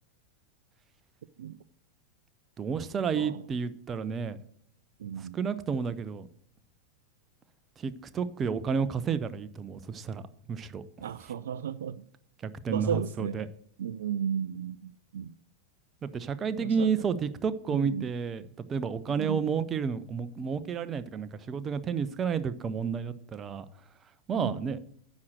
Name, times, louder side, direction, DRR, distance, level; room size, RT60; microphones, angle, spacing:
voice 1, 2.6-4.4 5.2-6.3 7.8-10.2 10.5-11.1 12.4-13.5 16.0-18.4 18.7-23.7 24.3-24.8, right 6 dB, 25° right, 0.7 m, -31 dB
voice 2, 3.1-3.5 5.0-5.4 11.0-12.1 12.7-13.4 13.8-15.3 16.6-16.9 17.7-18.1 19.1-19.5 24.3-24.6, right 8 dB, 60° right, 0.3 m, -34 dB
9.6 x 6.2 x 6.2 m
figure-of-eight pair, 90°, 0 cm